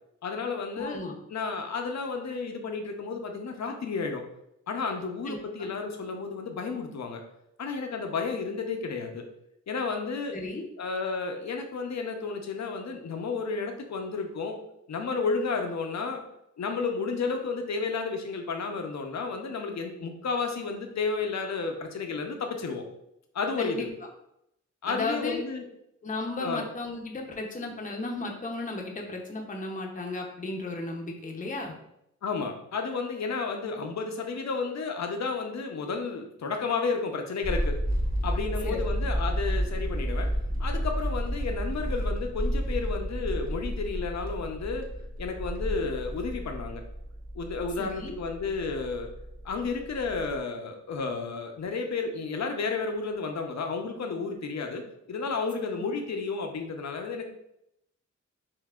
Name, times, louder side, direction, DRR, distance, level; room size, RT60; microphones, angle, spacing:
voice 1, 0.2-1.0 1.3-4.2 4.7-7.2 7.6-9.3 9.7-10.4 10.8-14.6 14.9-16.2 16.6-22.8 23.3-23.9 24.8-25.7 26.4-26.6 32.2-37.7 38.2-40.3 40.6-44.9 45.2-46.8 47.3-49.1 49.4-57.3, left 4 dB, 65° left, 4 dB, 0.7 m, -32 dB
voice 2, 0.8-1.2 5.3-5.7 10.3-10.7 23.6-23.9 24.8-25.4 26.0-31.7 38.6-38.8 47.8-48.2 55.7-55.8, left 2 dB, 25° left, 1 dB, 0.7 m, -34 dB
sound 1, 37.4-50.4, equal, 30° right, 0.8 m, -31 dB
5.6 x 2.6 x 2.4 m, 0.79 s
cardioid pair, 85°, 30 cm